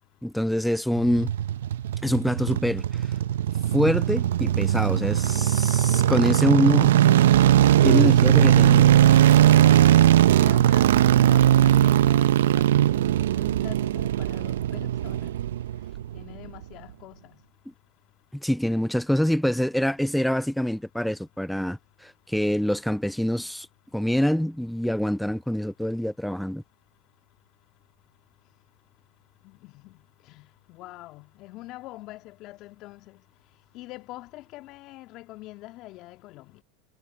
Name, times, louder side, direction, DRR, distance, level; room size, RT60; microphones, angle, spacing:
voice 1, 0.2-1.3 2.0-3.0 3.7-7.0 7.8-8.9 18.3-23.7 23.9-26.6, equal, ahead, 0.4 m, -25 dB
sound 1, 1.0-16.2 16.4-16.5, right 12 dB, 80° right, 0.5 m, -19 dB
voice 2, 8.8-10.1 10.4-15.4 16.1-17.4 29.4-30.0 30.3-33.2 33.7-36.6, left 18 dB, 55° left, 1.9 m, -44 dB
hypercardioid pair, 90°, 0 cm